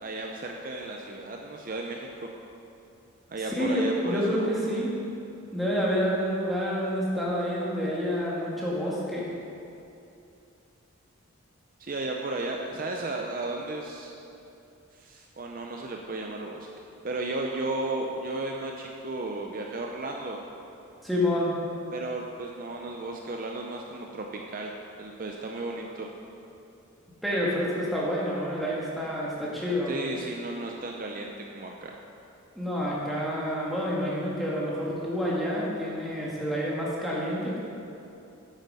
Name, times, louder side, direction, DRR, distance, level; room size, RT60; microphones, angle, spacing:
voice 1, 0.0-2.1 3.3-4.7 11.8-14.1 14.9-16.7 17.0-20.4 21.9-24.7 25.0-26.1 29.9-31.9, right 2 dB, 40° right, 1 dB, 0.5 m, -34 dB
voice 2, 3.4-4.9 5.5-9.3 21.0-21.5 27.2-29.9 32.6-37.6, equal, ahead, -6 dB, 1.7 m, -28 dB
8.4 x 8.1 x 5.4 m, 2.8 s
head